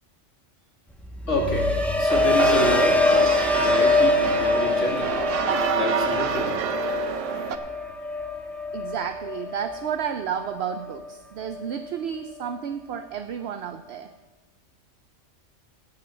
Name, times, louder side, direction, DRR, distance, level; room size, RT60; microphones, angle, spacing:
sound 1, 1.0-11.1 11.5-11.9, left 2 dB, ahead, 1.1 m, -24 dB
voice 1, 1.3-1.7 2.0-5.2 5.7-6.6, left 1 dB, 80° left, -2 dB, 2.9 m, -28 dB
sound 2, 2.1-7.6, right 7 dB, 90° right, 1.2 m, -27 dB
voice 2, 8.7-14.1, right 8 dB, 65° right, 9 dB, 0.8 m, -31 dB
16.0 x 5.7 x 7.3 m, 1.1 s
omnidirectional pair, 1.2 m